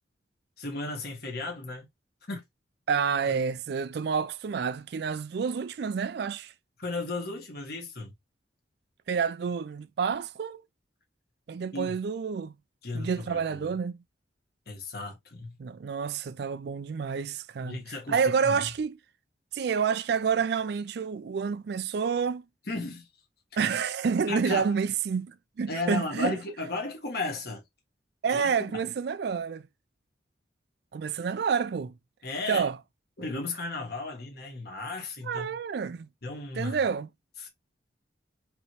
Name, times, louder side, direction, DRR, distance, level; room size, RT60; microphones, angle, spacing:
voice 1, 0.6-1.9 2.3-2.4 3.3-3.4 6.8-8.1 11.7-11.9 12.8-13.7 14.7-15.5 17.6-18.2 18.4-18.6 22.7-23.1 23.5-23.6 24.3-24.7 25.7-27.6 28.3-28.8 32.2-32.7 33.2-35.5 36.2-36.8 37.4-37.5, left 3 dB, 55° left, 1.6 m, -35 dB
voice 2, 2.9-6.5 9.1-10.6 11.5-12.5 12.9-14.0 15.6-17.8 18.1-19.0 19.5-22.4 23.6-26.4 28.2-29.6 30.9-31.9 32.5-32.8 35.2-36.1 36.5-37.1, right 6 dB, 60° right, 0.3 m, -29 dB
5.3 x 3.0 x 3.1 m
head